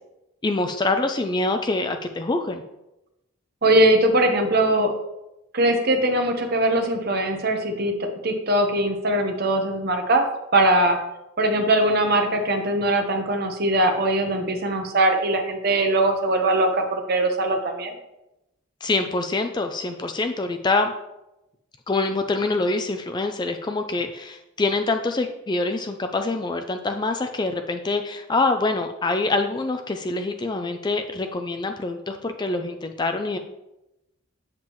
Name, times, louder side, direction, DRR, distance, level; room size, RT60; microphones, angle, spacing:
voice 1, 0.4-2.6 18.8-20.9 21.9-33.4, left 3 dB, 20° left, 6 dB, 0.4 m, -25 dB
voice 2, 3.6-4.9 5.5-7.9 8.2-10.2 10.5-11.0 11.4-17.9, right 1 dB, 45° right, 4 dB, 1.0 m, -21 dB
7.4 x 7.3 x 3.0 m, 0.92 s
head